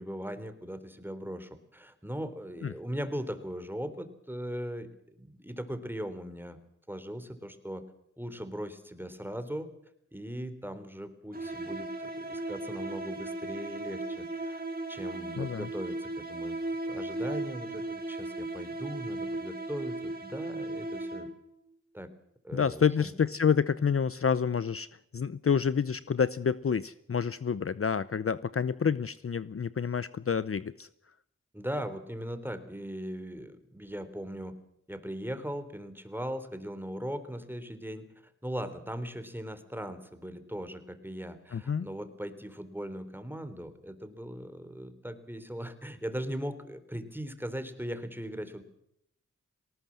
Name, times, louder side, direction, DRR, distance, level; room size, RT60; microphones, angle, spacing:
voice 1, 0.0-4.9 5.1-6.6 6.9-7.8 8.2-9.7 10.1-16.6 16.9-21.3 21.9-22.1 22.4-23.1 31.5-34.5 34.9-48.6, equal, 5° right, 10 dB, 3.6 m, -39 dB
sound 1, 11.3-21.5, right 2 dB, 30° right, 4.1 m, -36 dB
voice 2, 15.4-15.7 22.5-24.9 25.1-30.9 41.5-41.9, left 6 dB, 45° left, 17 dB, 0.7 m, -28 dB
19.0 x 18.5 x 7.6 m, 0.76 s
cardioid pair, 40°, 30 cm